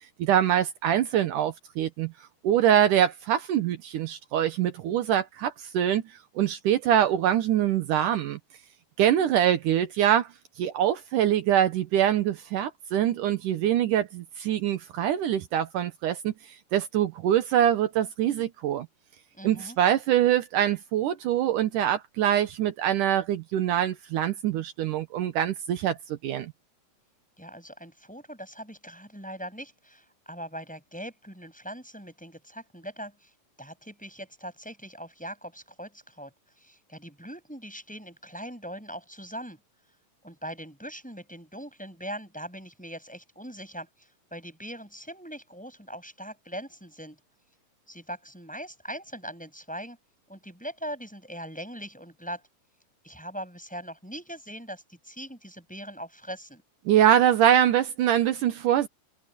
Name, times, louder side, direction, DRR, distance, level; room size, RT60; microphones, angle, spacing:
voice 1, 0.2-2.1 2.4-6.0 6.4-8.4 9.0-10.3 10.6-16.3 16.7-18.9 19.4-26.5 56.9-58.9, right 10 dB, 75° right, 2.5 m, -24 dB
voice 2, 19.3-19.8 27.4-33.3 33.6-39.6 40.2-47.2 47.9-50.0 50.3-52.4 53.0-56.6, equal, ahead, 6.3 m, -41 dB
omnidirectional pair, 3.9 m